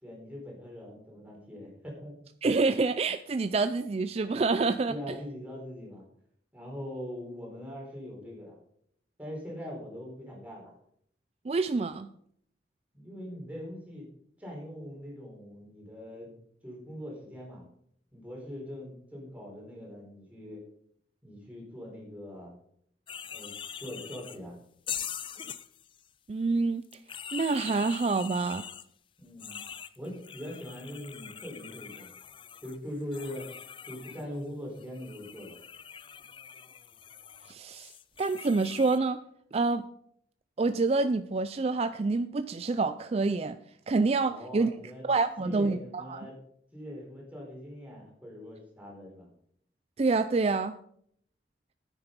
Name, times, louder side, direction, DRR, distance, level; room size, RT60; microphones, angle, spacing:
voice 1, 0.0-2.1 4.9-6.0 6.5-8.6 9.2-10.7 12.9-14.1 14.4-16.3 16.6-17.6 18.1-20.6 21.2-22.5 23.3-23.5 23.8-24.6 29.2-29.6 30.0-32.1 32.6-33.5 33.9-35.6 44.3-45.0 45.4-46.4 46.7-49.3, equal, 10° right, -3 dB, 4.2 m, -42 dB
voice 2, 2.4-5.2 11.5-12.1 26.3-26.8 27.3-28.6 37.5-37.9 38.2-39.2 39.5-39.8 40.6-43.6 43.9-44.7 45.1-46.3 50.0-50.7, right 3 dB, 35° right, 10 dB, 0.4 m, -27 dB
sound 1, 23.1-24.4 24.9-26.0 26.8-28.8 29.4-34.2 34.8-39.0, left 8 dB, 30° left, 0.4 m, -43 dB
9.8 x 9.1 x 5.3 m, 0.68 s
head